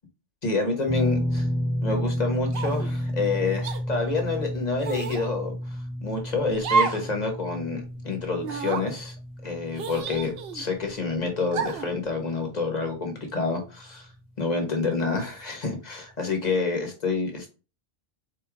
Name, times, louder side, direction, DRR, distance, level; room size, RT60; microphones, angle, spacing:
voice 1, 0.4-1.4 1.8-9.1 9.4-14.1 14.4-17.5, left 3 dB, 40° left, 1.2 m, -28 dB
sound 1, 0.9-13.1 13.4-13.6 15.3-15.4, equal, 5° right, 1.2 m, -32 dB
sound 2, 2.5-2.9 3.6-3.8 4.8-5.3 6.6-7.1 7.5-7.6 8.4-8.9 9.8-10.7 11.5-11.9, right 5 dB, 65° right, 0.8 m, -29 dB
4.1 x 3.1 x 3.7 m
omnidirectional pair, 1.1 m